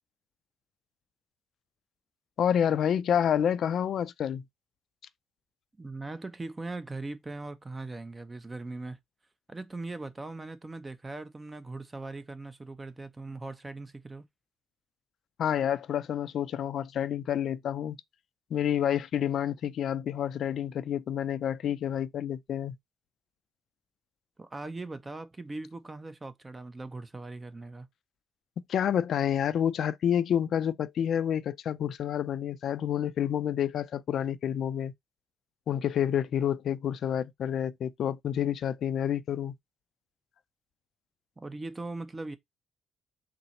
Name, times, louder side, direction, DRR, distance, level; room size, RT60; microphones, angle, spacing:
voice 1, 2.4-4.4 15.4-18.0 18.5-22.8 28.7-34.9 35.7-39.5, left 9 dB, 65° left, 0.3 m, -29 dB
voice 2, 5.8-9.0 9.5-14.3 24.4-27.9 41.4-42.4, right 2 dB, 20° right, 0.6 m, -40 dB
3.8 x 2.0 x 4.2 m
cardioid pair, 90°, 0 cm